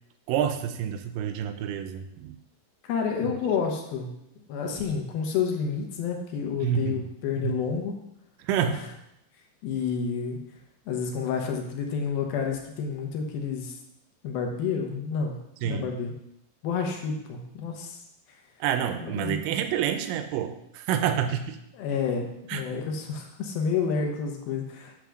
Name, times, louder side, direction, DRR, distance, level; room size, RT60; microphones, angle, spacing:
voice 1, 0.3-2.4 3.2-3.3 6.6-7.0 7.4-7.7 8.4-8.8 15.6-15.9 18.6-21.6 22.5-22.6, right 9 dB, 85° right, 9 dB, 2.0 m, -28 dB
voice 2, 2.8-4.1 4.5-8.0 8.7-8.8 9.6-10.4 10.9-13.8 14.2-15.4 15.6-16.1 16.6-18.0 19.0-19.4 21.7-24.9, left 6 dB, 75° left, 2 dB, 2.8 m, -29 dB
9.1 x 3.4 x 6.2 m, 0.81 s
omnidirectional pair, 4.5 m